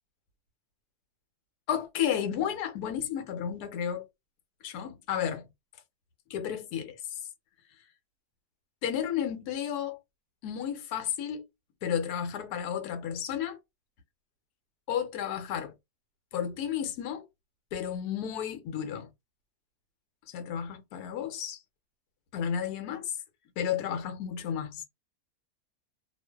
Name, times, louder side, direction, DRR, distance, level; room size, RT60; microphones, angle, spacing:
voice 1, 1.7-4.1 4.6-5.5 6.3-7.2 8.8-10.0 10.4-11.4 11.8-13.6 14.9-15.7 16.3-17.2 17.7-19.1 20.3-21.6 22.3-23.2 23.6-24.8, left 9 dB, 85° left, 1.2 m, -32 dB
2.4 x 2.4 x 2.2 m
omnidirectional pair, 1.6 m